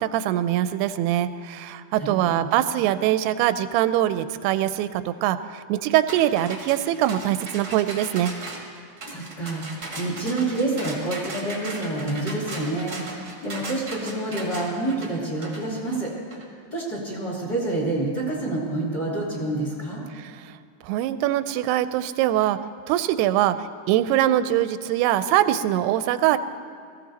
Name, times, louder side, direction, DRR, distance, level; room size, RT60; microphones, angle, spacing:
voice 1, 0.0-8.3 20.2-20.3 20.9-22.6 22.9-26.4, right 12 dB, 85° right, 12 dB, 2.6 m, -23 dB
voice 2, 2.0-2.5 9.0-13.0 13.4-16.1 16.7-20.0, right 2 dB, 30° left, -3 dB, 2.6 m, -28 dB
sound 1, 6.1-16.4, right 2 dB, 40° right, 1.0 m, -37 dB
19.5 x 15.0 x 4.1 m, 2.2 s
omnidirectional pair, 4.6 m